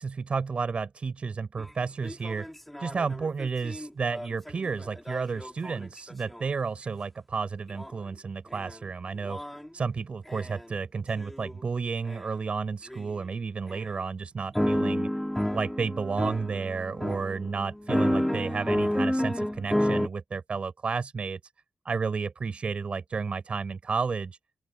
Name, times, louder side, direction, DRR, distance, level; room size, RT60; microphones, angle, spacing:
voice 1, 0.0-2.5 2.8-9.4 9.7-15.1 15.5-21.4 21.8-24.4, right 5 dB, 50° right, 4.5 m, -32 dB
sound 1, 1.6-1.7 2.0-6.4 7.8-7.9 8.5-8.8 9.2-9.7 10.3-10.6 11.2-11.5 12.1-12.2 12.9-13.0 13.7-13.8 14.5-20.1, equal, 5° left, 2.5 m, -30 dB
open air
wide cardioid pair, 115°, 3 cm